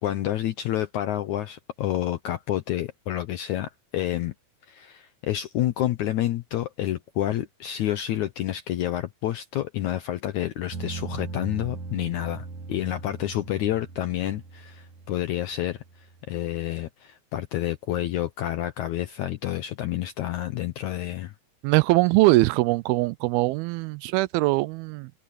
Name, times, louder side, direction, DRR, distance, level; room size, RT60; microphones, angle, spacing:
voice 1, 0.0-4.3 4.7-15.8 16.3-21.3, left 13 dB, 75° left, 1.7 m, -29 dB
sound 1, 10.7-16.2, right 3 dB, 55° right, 3.4 m, -39 dB
voice 2, 21.6-25.1, right 20 dB, 85° right, 2.5 m, -22 dB
omnidirectional pair, 4.3 m